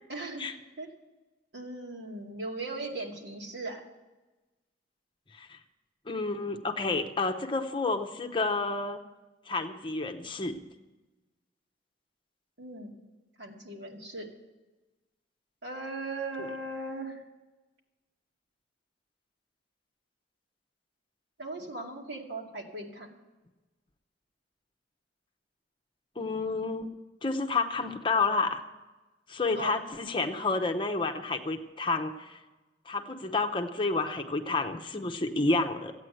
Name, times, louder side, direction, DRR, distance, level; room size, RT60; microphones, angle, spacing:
voice 1, 0.1-0.5 0.8-0.9 1.5-3.8 12.6-12.9 13.4-14.3 15.6-17.2 21.4-23.2 29.6-29.7, right 2 dB, 70° right, 0 dB, 2.3 m, -38 dB
voice 2, 6.1-9.0 9.5-10.5 26.2-26.9 27.2-28.6 29.3-32.4 32.9-35.9, left 3 dB, 25° left, 6 dB, 0.8 m, -30 dB
14.5 x 8.9 x 7.8 m, 1.1 s
head